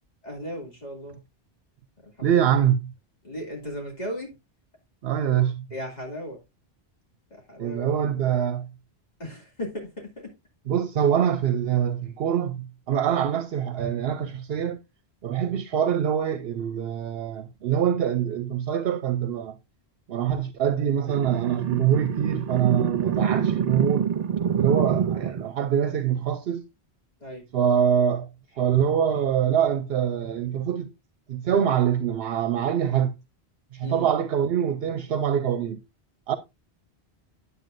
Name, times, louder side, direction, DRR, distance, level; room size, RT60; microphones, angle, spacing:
voice 1, 0.2-1.2 2.0-2.6 3.2-4.3 5.7-6.4 7.3-8.0 9.2-10.1 13.1-13.3 27.2-27.5 33.8-34.1, equal, 40° left, 2.9 m, -36 dB
voice 2, 2.2-2.9 5.0-5.6 7.6-8.7 10.7-14.8 15.2-19.6 20.1-24.1 24.5-26.6 27.5-28.3 28.5-30.9 31.3-33.1 33.7-35.8 36.3-36.4, right 9 dB, 70° right, 0.9 m, -24 dB
sound 1, 21.1-25.5, right 8 dB, 50° right, 0.5 m, -26 dB
9.3 x 8.2 x 2.6 m
omnidirectional pair, 1.1 m